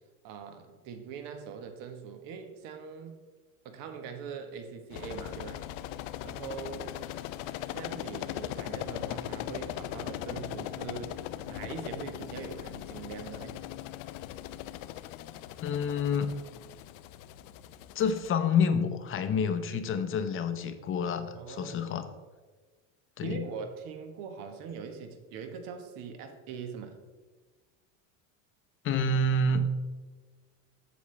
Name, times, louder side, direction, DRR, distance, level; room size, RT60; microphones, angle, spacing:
voice 1, 0.2-3.2 3.6-5.6 6.2-6.9 7.7-13.6 21.3-21.9 23.2-27.0, right 6 dB, 60° right, 7 dB, 1.3 m, -42 dB
sound 1, 4.9-18.3, left 13 dB, 70° left, 0.5 m, -39 dB
voice 2, 15.6-16.4 17.9-22.1 23.2-23.5 28.8-29.7, left 3 dB, 35° left, 9 dB, 0.7 m, -28 dB
8.4 x 7.1 x 3.3 m, 1.3 s
supercardioid pair, 120°, 39 cm